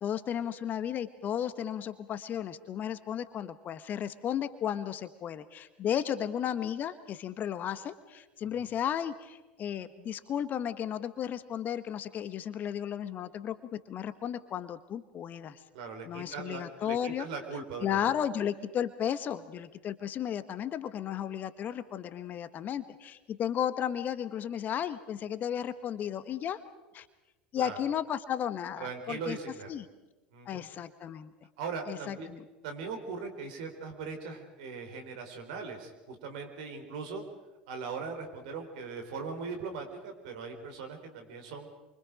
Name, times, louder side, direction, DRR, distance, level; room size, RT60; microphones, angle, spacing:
voice 1, 0.0-15.6 16.0-17.3 17.8-26.6 26.9-27.1 27.5-29.4 29.7-29.9 30.4-31.3 31.9-32.5, left 9 dB, 40° left, 12 dB, 1.3 m, -34 dB
voice 2, 15.7-18.1 27.5-27.8 28.8-29.7 30.3-30.7 31.6-32.3 32.6-37.2 37.7-41.7, right 5 dB, 65° right, 5 dB, 4.1 m, -40 dB
28.5 x 24.5 x 5.2 m, 1.1 s
figure-of-eight pair, 75°, 5 cm